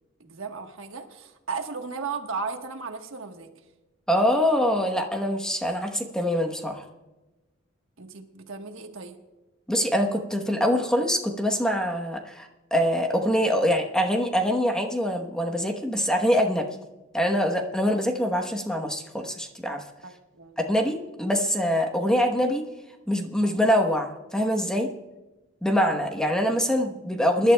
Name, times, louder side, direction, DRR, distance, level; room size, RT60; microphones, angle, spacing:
voice 1, 0.2-3.5 8.0-9.2 20.0-20.6, right 4 dB, 70° right, 5 dB, 1.3 m, -35 dB
voice 2, 4.1-6.8 9.7-16.7 17.1-19.8 20.6-22.6 23.1-24.9 25.6-27.5, equal, 5° left, 3 dB, 1.0 m, -24 dB
24.5 x 11.5 x 2.2 m, 1.1 s
head